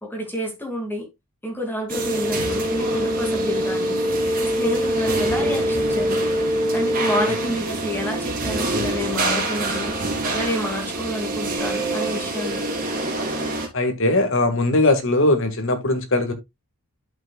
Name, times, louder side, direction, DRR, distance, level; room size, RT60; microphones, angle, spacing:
voice 1, 0.0-1.1 1.4-4.0 4.4-6.2 6.7-9.9 10.3-12.7, equal, 10° left, 2.2 m, -29 dB
sound 1, 1.9-13.7, right 1 dB, 40° right, 3.0 m, -24 dB
voice 2, 13.7-16.3, left 2 dB, 60° left, 1.7 m, -20 dB
12.0 x 5.9 x 2.3 m
head